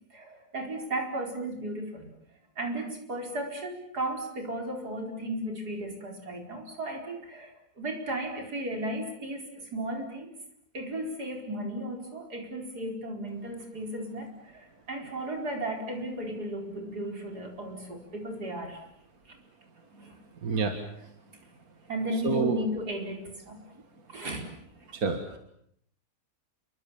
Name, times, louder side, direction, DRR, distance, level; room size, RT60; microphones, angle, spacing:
voice 1, 0.1-2.1 2.6-10.3 10.7-18.8 19.3-19.4 20.0-20.2 21.9-23.6 24.1-24.5, right 1 dB, 90° right, 3 dB, 5.2 m, -35 dB
voice 2, 20.4-20.7 22.2-22.6 24.9-25.4, right 4 dB, 65° right, 6 dB, 2.3 m, -28 dB
28.5 x 23.5 x 7.3 m, 0.71 s
omnidirectional pair, 1.7 m